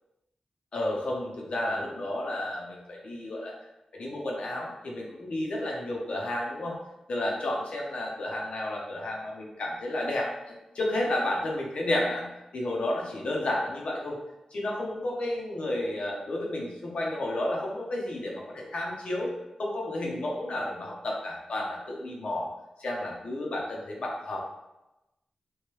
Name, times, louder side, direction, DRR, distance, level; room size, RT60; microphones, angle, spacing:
voice 1, 0.7-3.5 3.9-6.8 7.1-14.2 14.5-19.3 19.6-22.5 22.8-24.5, left 1 dB, 70° left, -2 dB, 0.7 m, -31 dB
3.1 x 2.2 x 3.0 m, 0.95 s
wide cardioid pair, 85°, 2 cm